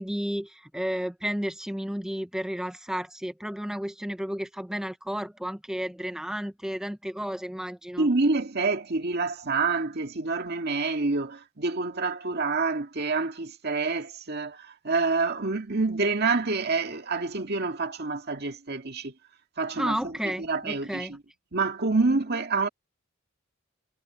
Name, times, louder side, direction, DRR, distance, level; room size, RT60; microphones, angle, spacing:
voice 1, 0.0-8.1 19.8-21.2, equal, 5° right, 0.5 m, -32 dB
voice 2, 8.0-19.1 19.6-21.2 21.5-22.7, right 3 dB, 55° right, 2.1 m, -27 dB
head